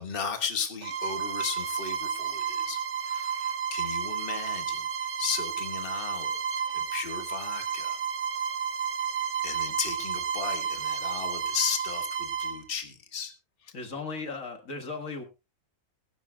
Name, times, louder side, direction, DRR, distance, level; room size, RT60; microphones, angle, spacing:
voice 1, 0.0-4.9 5.2-6.4 6.7-8.0 9.4-13.3 13.6-13.7, left 6 dB, 45° left, 6 dB, 1.7 m, -35 dB
Bowed string instrument, 0.8-12.6, right 7 dB, 45° right, 0.9 m, -32 dB
voice 2, 13.7-15.2, left 4 dB, 75° left, 4 dB, 2.1 m, -36 dB
22.0 x 11.0 x 2.3 m, 0.27 s
omnidirectional pair, 1.4 m